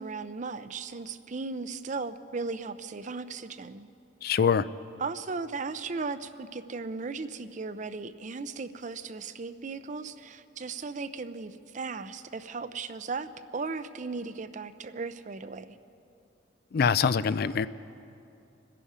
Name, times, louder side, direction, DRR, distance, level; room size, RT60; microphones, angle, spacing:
voice 1, 0.0-3.9 5.0-15.8, right 4 dB, 40° right, 12 dB, 0.5 m, -36 dB
voice 2, 4.2-4.7 16.7-17.7, left 6 dB, 50° left, 16 dB, 0.3 m, -24 dB
26.5 x 11.0 x 4.9 m, 2.7 s
head